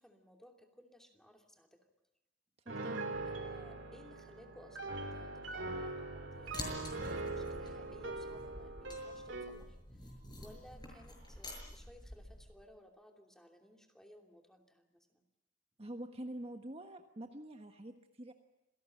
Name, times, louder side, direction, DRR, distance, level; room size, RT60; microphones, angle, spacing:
voice 1, 0.0-1.8 3.3-15.2, equal, 5° left, 3 dB, 2.8 m, -60 dB
voice 2, 2.6-3.1 15.8-18.3, right 1 dB, 30° right, 5 dB, 1.4 m, -46 dB
Piano, 2.7-9.6, right 2 dB, 70° right, 2.8 m, -42 dB
sound 1, 6.3-12.5, left 1 dB, 25° left, 6.5 m, -49 dB
26.5 x 18.0 x 8.9 m, 0.90 s
head